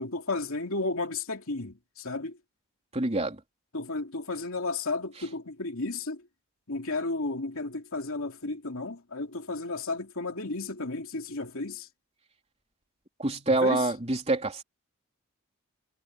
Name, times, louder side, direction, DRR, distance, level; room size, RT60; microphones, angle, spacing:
voice 1, 0.0-2.4 3.7-6.2 6.7-11.9 13.5-13.9, left 3 dB, 70° left, 2.9 m, -33 dB
voice 2, 2.9-3.4 13.2-14.6, right 2 dB, 30° right, 3.3 m, -26 dB
head